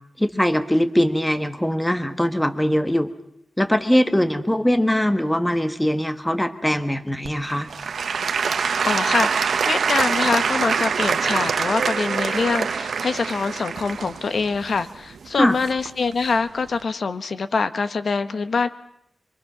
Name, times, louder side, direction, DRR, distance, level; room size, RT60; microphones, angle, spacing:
voice 1, 0.2-3.1 3.6-7.7 15.4-15.6, equal, 5° left, 9 dB, 1.3 m, -21 dB
Applause / Crowd, 7.2-16.1 16.7-16.8, right 6 dB, 90° right, 0.9 m, -24 dB
voice 2, 8.8-18.7, left 4 dB, 60° left, 11 dB, 1.1 m, -24 dB
25.0 x 23.5 x 6.1 m, 0.77 s
wide cardioid pair, 140°, 0 cm